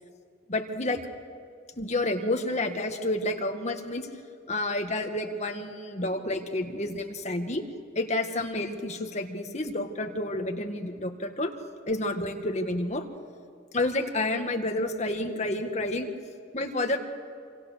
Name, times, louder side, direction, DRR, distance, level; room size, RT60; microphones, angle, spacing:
voice 1, 0.5-1.0 1.8-4.1 4.5-7.6 8.0-11.5 11.9-13.0 13.7-16.1 16.5-17.0, left 1 dB, 35° left, 4 dB, 1.9 m, -29 dB
27.0 x 25.5 x 6.7 m, 2.3 s
head